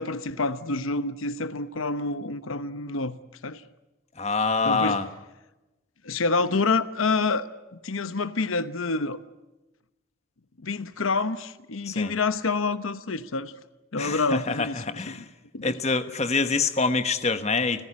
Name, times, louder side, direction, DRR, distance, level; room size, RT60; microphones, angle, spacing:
voice 1, 0.0-3.6 4.6-5.0 6.0-7.5 7.8-9.2 10.6-13.5 13.9-15.2 15.5-15.7, left 3 dB, 90° left, 1.0 m, -27 dB
voice 2, 4.2-5.1 11.9-12.1 14.0-15.2 15.6-17.9, left 4 dB, 35° left, 1.2 m, -26 dB
29.5 x 15.0 x 9.8 m
head